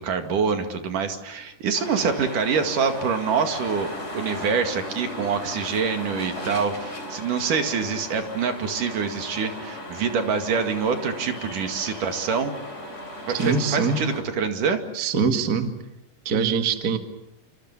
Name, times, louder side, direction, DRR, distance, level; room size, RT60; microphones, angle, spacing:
voice 1, 0.0-12.6 13.3-14.8, right 6 dB, 75° right, 6 dB, 3.8 m, -25 dB
sound 1, 1.7-14.2, left 1 dB, 20° left, 4.1 m, -36 dB
voice 2, 13.3-14.0 14.9-15.8 16.3-17.0, right 5 dB, 35° right, 7 dB, 1.9 m, -23 dB
27.5 x 26.0 x 7.3 m, 0.83 s
omnidirectional pair, 3.7 m